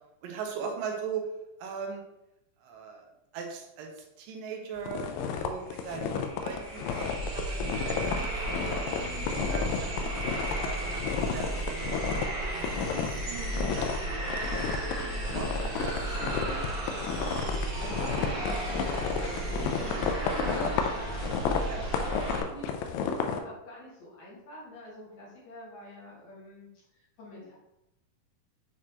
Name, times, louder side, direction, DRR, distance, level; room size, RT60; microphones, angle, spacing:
voice 1, 0.2-1.3 1.6-2.0 2.6-3.0 3.3-5.0 5.4-6.1 6.4-12.1 12.5-14.2 14.7-16.6 18.8-19.1 21.6-21.9, right 6 dB, 80° right, 2 dB, 2.5 m, -40 dB
sound 1, 4.9-12.3 12.6-13.2 13.5-23.4, left 7 dB, 85° left, 2.4 m, -32 dB
sound 2, 5.4-5.5 5.7-22.4, right 1 dB, 40° right, 1.3 m, -34 dB
Musical instrument, 7.7-20.5, right 1 dB, 65° right, 2.2 m, -46 dB
voice 2, 17.3-27.5, equal, 60° left, -7 dB, 3.2 m, -46 dB
7.3 x 4.6 x 2.9 m, 0.89 s
omnidirectional pair, 4.0 m